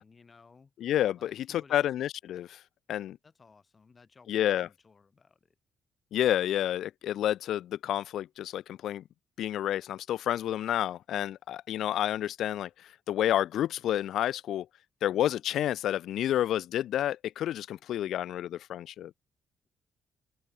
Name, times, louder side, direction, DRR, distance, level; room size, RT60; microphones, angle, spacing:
voice 1, 0.0-0.7 1.2-1.9 3.2-5.6, left 4 dB, 35° left, 5.3 m, -58 dB
voice 2, 0.8-2.6 2.9-3.2 4.3-4.7 6.1-9.0 9.4-14.7 15.0-19.1, left 12 dB, 75° left, 0.5 m, -30 dB
cardioid pair, 90°, 0 cm